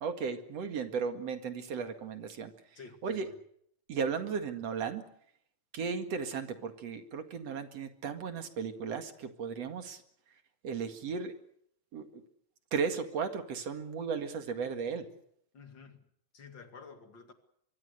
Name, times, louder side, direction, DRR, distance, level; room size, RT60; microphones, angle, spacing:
voice 1, 0.0-2.5 3.0-3.3 3.9-5.0 5.7-10.0 10.6-11.3 11.9-12.2 12.7-15.1, right 6 dB, 60° right, 3.1 m, -35 dB
voice 2, 15.5-16.0 16.3-17.3, left 5 dB, 40° left, 2.6 m, -50 dB
24.5 x 23.5 x 6.7 m
omnidirectional pair, 3.3 m